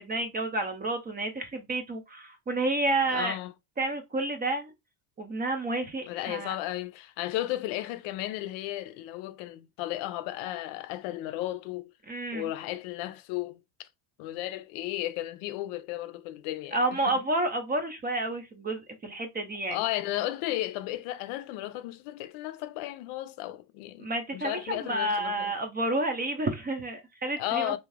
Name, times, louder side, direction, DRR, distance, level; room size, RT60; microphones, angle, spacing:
voice 1, 0.0-3.4 3.8-4.7 5.2-6.6 12.1-12.5 16.7-19.8 24.0-27.8, right 2 dB, 20° right, 0.5 m, -30 dB
voice 2, 3.1-3.5 6.1-11.9 12.3-13.9 14.2-16.8 17.1-17.2 19.7-25.5 27.4-27.8, left 15 dB, 70° left, 0.6 m, -34 dB
2.7 x 2.4 x 3.2 m
cardioid pair, 130°, 50 cm